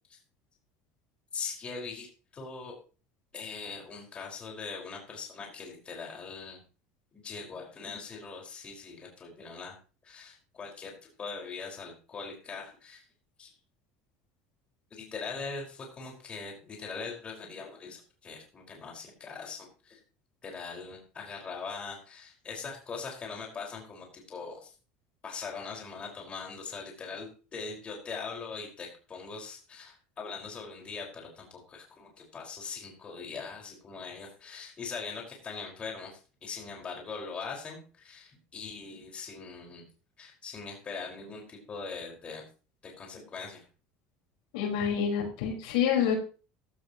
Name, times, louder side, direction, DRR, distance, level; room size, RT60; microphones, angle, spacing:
voice 1, 1.3-2.1 2.3-2.8 3.3-6.6 7.1-9.8 10.0-10.9 11.2-13.0 13.4-13.5 14.9-20.0 20.4-24.7 25.2-39.9 40.2-42.4 42.8-43.6, left 5 dB, 30° left, 0 dB, 5.3 m, -41 dB
voice 2, 44.5-46.1, left 8 dB, 90° left, 0 dB, 5.3 m, -27 dB
16.0 x 13.0 x 3.1 m, 0.36 s
supercardioid pair, 125°, 4 cm